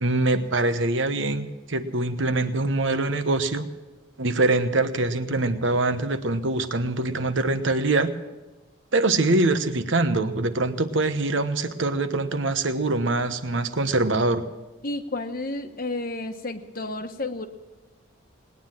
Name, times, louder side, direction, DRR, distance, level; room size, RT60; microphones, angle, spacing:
voice 1, 0.0-3.7 4.2-8.1 8.9-14.4, right 2 dB, 65° right, 9 dB, 1.1 m, -24 dB
voice 2, 14.8-17.5, left 2 dB, 45° left, 7 dB, 1.2 m, -31 dB
19.5 x 9.8 x 7.5 m, 1.1 s
head